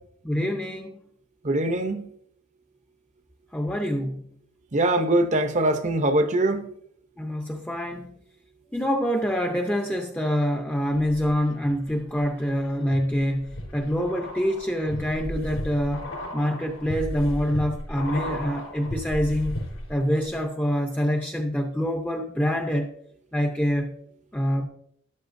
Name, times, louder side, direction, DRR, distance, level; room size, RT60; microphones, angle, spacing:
voice 1, 0.2-1.0 3.5-4.2 7.2-8.1 8.7-19.6 19.9-22.9 23.3-24.0 24.3-24.7, equal, 5° left, 0.7 m, -26 dB
voice 2, 1.4-2.1 4.7-6.7, right 1 dB, 35° right, 0.7 m, -22 dB
sound 1, 11.0-11.7 12.2-20.0 20.3-20.4, equal, 70° left, 3.9 m, -35 dB
13.0 x 11.5 x 2.6 m
head